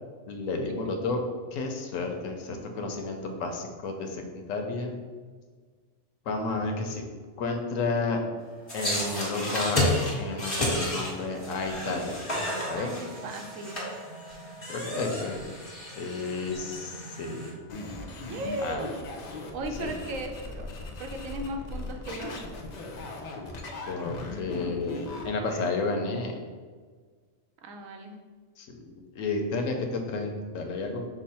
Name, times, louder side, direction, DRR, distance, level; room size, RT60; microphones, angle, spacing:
voice 1, 0.3-1.2 1.5-5.0 6.2-7.0 7.4-8.2 8.7-9.8 10.2-12.2 12.7-12.9 14.7-15.4 15.9-17.5 18.6-18.8 19.8-19.9 23.9-26.3 28.6-31.0, left 3 dB, 85° left, 4 dB, 1.0 m, -31 dB
sound 1, 8.7-17.5, left 1 dB, 25° left, 1.3 m, -32 dB
voice 2, 12.8-13.8 18.3-19.0 19.5-20.7 21.0-22.4 27.6-28.2, right 1 dB, 90° right, 4 dB, 1.0 m, -36 dB
sound 2, 17.7-25.8, left 2 dB, 60° left, 0.4 m, -39 dB
6.1 x 2.1 x 4.2 m, 1.5 s
omnidirectional pair, 1.3 m